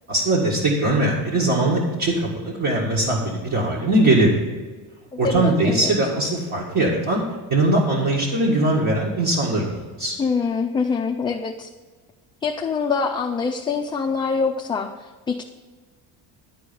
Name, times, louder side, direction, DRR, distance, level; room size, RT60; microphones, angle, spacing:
voice 1, 0.1-4.4 5.2-7.2 7.5-10.2, right 2 dB, 45° right, -5 dB, 1.9 m, -21 dB
voice 2, 5.2-5.9 10.2-11.7 12.4-15.4, left 5 dB, 15° left, 1 dB, 0.4 m, -24 dB
11.5 x 4.8 x 6.9 m, 1.3 s
cardioid pair, 150°, 40 cm